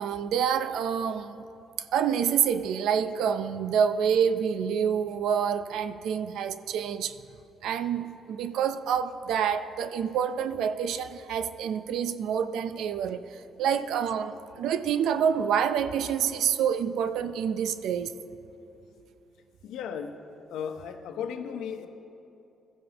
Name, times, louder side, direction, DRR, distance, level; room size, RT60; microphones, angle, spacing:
voice 1, 0.0-1.4 1.9-7.1 7.6-13.2 13.6-18.1, right 8 dB, 85° right, 0.5 m, -27 dB
voice 2, 19.6-20.2 20.5-21.9, left 7 dB, 85° left, 0.9 m, -35 dB
21.0 x 14.5 x 3.0 m
cardioid pair, 90°, 0 cm